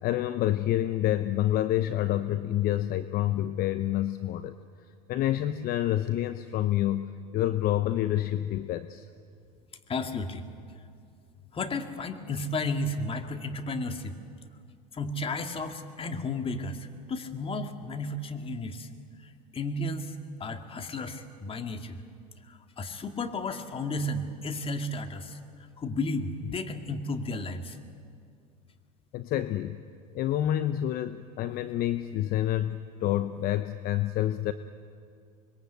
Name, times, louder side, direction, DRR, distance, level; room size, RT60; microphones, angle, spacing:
voice 1, 0.0-4.5 5.1-9.1 29.1-29.8 30.1-34.5, left 13 dB, 50° left, 11 dB, 0.9 m, -28 dB
voice 2, 9.9-10.4 11.5-14.2 14.9-18.9 19.2-22.0 22.4-27.8, left 2 dB, 30° left, 6 dB, 2.3 m, -33 dB
25.5 x 21.5 x 8.2 m, 2.3 s
hypercardioid pair, 85°, 20 cm